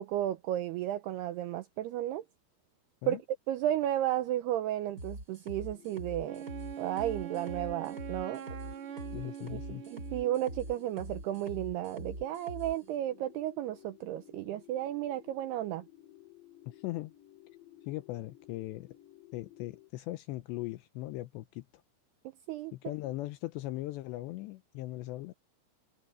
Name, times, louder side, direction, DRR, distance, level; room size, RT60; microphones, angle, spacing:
voice 1, 0.0-2.2 3.1-3.2 3.5-6.4 6.8-8.4 9.5-9.6 9.9-15.8 22.5-22.7, right 13 dB, 85° right, 2.4 m, -33 dB
sound 1, 5.0-12.7, right 1 dB, 20° right, 7.4 m, -43 dB
sound 2, 5.6-19.9, left 14 dB, 60° left, 6.4 m, -56 dB
Wind instrument woodwind instrument, 6.3-10.6, right 9 dB, 60° right, 2.3 m, -43 dB
voice 2, 9.1-9.8 16.8-17.1 17.9-18.9 19.3-21.6 22.7-25.3, left 17 dB, 85° left, 2.7 m, -39 dB
omnidirectional pair, 5.5 m